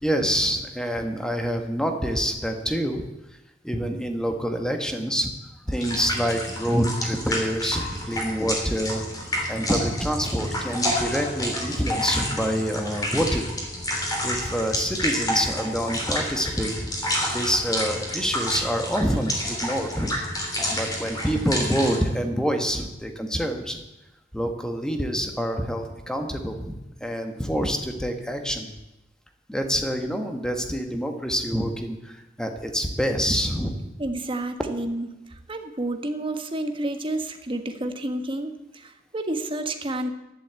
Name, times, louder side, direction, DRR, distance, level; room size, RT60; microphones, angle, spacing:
voice 1, 0.0-3.0 3.6-5.3 5.6-13.5 14.2-16.9 17.3-20.1 20.7-23.8 24.3-28.7 29.5-33.8, equal, 5° left, 5 dB, 1.6 m, -26 dB
sound 1, 5.7-22.0, left 1 dB, 20° left, 3.6 m, -29 dB
voice 2, 34.0-35.1 35.5-40.1, right 1 dB, 30° right, 6 dB, 1.4 m, -30 dB
11.5 x 11.0 x 8.3 m, 0.95 s
head